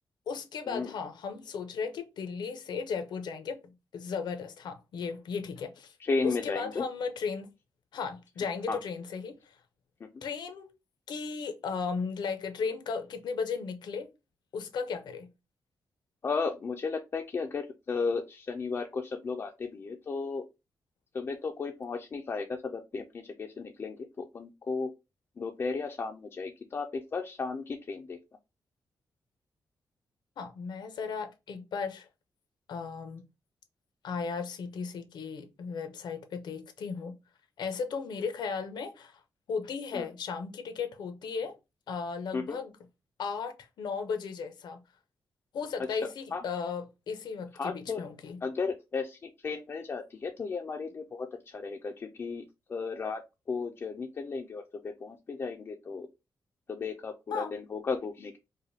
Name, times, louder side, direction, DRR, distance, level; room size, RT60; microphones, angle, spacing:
voice 1, 0.3-5.9 6.2-7.5 7.9-9.5 10.2-10.7 11.1-14.1 14.5-15.3 30.4-32.1 32.7-33.3 34.0-37.2 37.6-39.2 39.5-41.6 41.9-42.7 43.2-44.8 45.5-48.4 57.3-57.6, left 5 dB, 80° left, 0.7 m, -35 dB
voice 2, 6.0-6.9 8.7-8.8 10.0-10.1 16.2-20.4 21.1-24.9 25.4-28.2 39.9-40.1 42.3-42.6 45.9-46.0 46.3-46.4 47.5-48.0 48.4-52.4 52.7-53.2 53.5-56.1 56.7-58.4, left 4 dB, 35° left, 0.4 m, -34 dB
4.9 x 2.2 x 2.7 m
wide cardioid pair, 150°, 7 cm